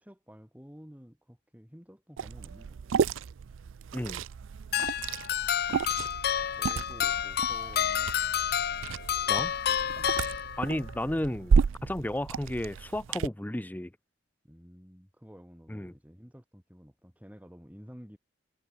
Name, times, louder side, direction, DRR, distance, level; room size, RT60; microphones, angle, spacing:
voice 1, 0.0-2.8 6.4-8.2 9.9-10.2 14.4-18.2, equal, 5° right, 3.1 m, -51 dB
Liquid, 2.2-13.3, right 6 dB, 70° right, 0.4 m, -32 dB
voice 2, 3.9-4.2 9.3-9.5 10.6-11.6 11.8-13.9 15.7-15.9, left 1 dB, 10° left, 0.6 m, -33 dB
sound 1, 4.7-10.9, left 9 dB, 50° left, 0.5 m, -29 dB
head